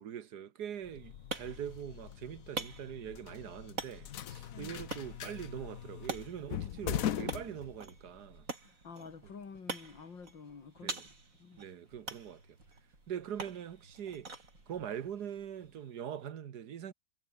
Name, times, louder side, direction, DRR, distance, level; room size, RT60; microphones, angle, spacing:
voice 1, 0.0-8.5 10.8-11.1 11.6-12.4 13.1-14.4 14.7-16.9, right 9 dB, 65° right, 1.7 m, -42 dB
sound 1, 0.7-16.3, right 3 dB, 45° right, 3.8 m, -46 dB
sound 2, 0.9-8.2, left 10 dB, 55° left, 1.2 m, -41 dB
sound 3, 2.7-15.8, right 2 dB, 80° right, 9.0 m, -64 dB
voice 2, 4.5-4.8 8.6-11.1 11.4-11.6, left 5 dB, 85° left, 3.4 m, -50 dB
omnidirectional pair, 2.0 m